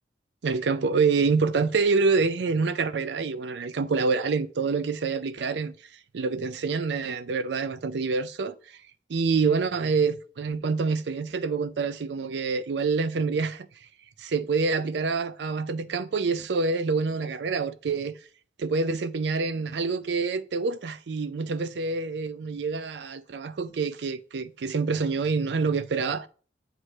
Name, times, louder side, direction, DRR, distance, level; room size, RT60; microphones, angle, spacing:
voice 1, 0.4-5.7 6.1-8.5 9.1-13.7 14.2-18.2 18.6-26.3, right 4 dB, 80° right, 0.4 m, -26 dB
8.0 x 3.1 x 6.3 m
head